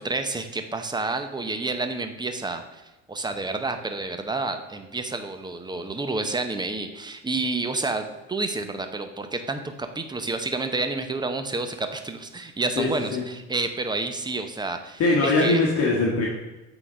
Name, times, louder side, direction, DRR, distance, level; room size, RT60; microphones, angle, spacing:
voice 1, 0.0-2.8 3.1-15.6, right 3 dB, 15° right, 7 dB, 0.8 m, -29 dB
voice 2, 12.8-13.2 15.0-16.3, left 2 dB, 50° left, -3 dB, 1.5 m, -21 dB
8.1 x 4.0 x 5.0 m, 1.1 s
cardioid pair, 105°, 31 cm